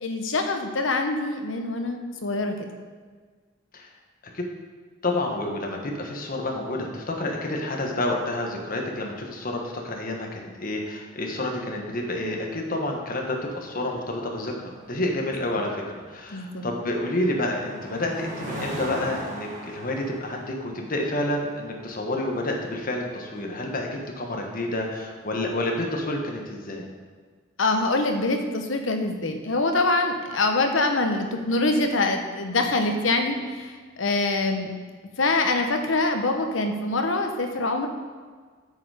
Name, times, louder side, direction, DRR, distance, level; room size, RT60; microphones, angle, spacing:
voice 1, 0.0-2.5 16.3-16.6 27.6-34.7 35.2-37.9, left 2 dB, 85° left, 5 dB, 1.0 m, -24 dB
voice 2, 5.0-23.9 24.2-26.8, left 1 dB, 45° left, 1 dB, 1.4 m, -29 dB
sound 1, 12.9-26.4, right 1 dB, 45° right, 1.9 m, -41 dB
8.4 x 6.7 x 5.0 m, 1.5 s
head